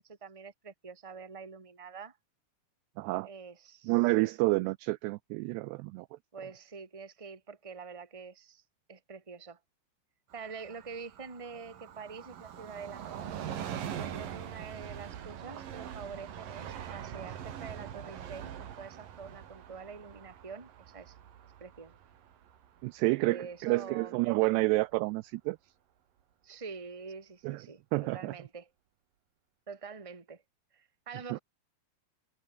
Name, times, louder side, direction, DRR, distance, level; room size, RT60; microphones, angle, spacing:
voice 1, 0.0-2.2 3.2-4.0 6.3-8.6 8.9-9.6 10.3-13.3 13.9-21.2 21.6-22.0 23.2-24.2 24.5-24.6 26.4-28.7 29.7-30.4 30.7-31.4, right 5 dB, 10° right, 1.6 m, -46 dB
voice 2, 3.0-3.3 3.9-6.1 22.8-25.6 27.4-27.6 27.9-28.3 31.3-31.4, right 22 dB, 85° right, 2.4 m, -29 dB
Train, 10.3-23.6 24.0-24.1, right 9 dB, 55° right, 3.5 m, -43 dB
omnidirectional pair, 5.3 m